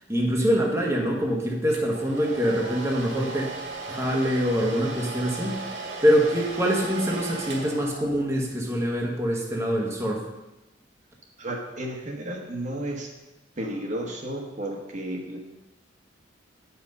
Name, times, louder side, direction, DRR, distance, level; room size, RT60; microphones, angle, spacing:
voice 1, 0.1-3.5 3.9-10.3, equal, 15° right, -2 dB, 1.1 m, -24 dB
Domestic sounds home sounds, 1.7-8.4, right 3 dB, 80° right, 1.8 m, -37 dB
voice 2, 11.4-13.1 13.6-15.4, right 1 dB, 40° right, 1 dB, 1.2 m, -33 dB
8.8 x 5.7 x 5.4 m, 1.0 s
head